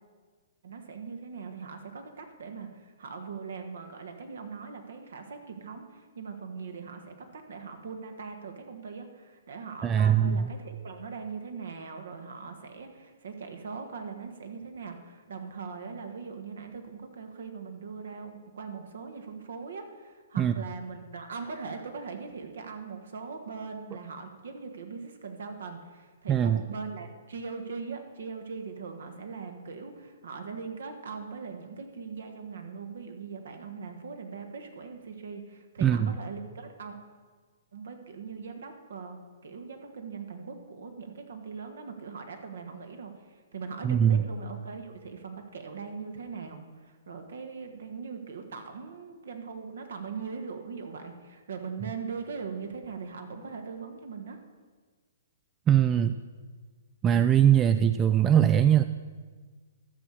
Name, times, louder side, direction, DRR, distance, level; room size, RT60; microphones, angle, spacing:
voice 1, 0.6-37.0 37.7-54.4, right 5 dB, 60° right, 5 dB, 1.4 m, -40 dB
voice 2, 9.8-10.5 20.4-20.5 26.3-26.6 35.8-36.1 43.8-44.2 55.7-56.1 57.0-58.8, right 9 dB, 20° right, 10 dB, 0.3 m, -21 dB
12.0 x 6.9 x 6.3 m, 1.5 s
figure-of-eight pair, 120°, 0 cm